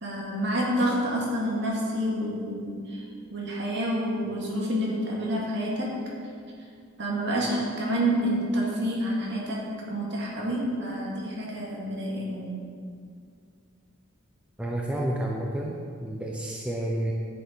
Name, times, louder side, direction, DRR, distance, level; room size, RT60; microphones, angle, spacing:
voice 1, 0.0-3.0 3.3-5.9 7.0-12.7, equal, 55° right, -4 dB, 2.0 m, -28 dB
voice 2, 14.6-17.1, right 1 dB, 5° right, -2 dB, 0.6 m, -30 dB
10.0 x 7.3 x 4.0 m, 2.2 s
head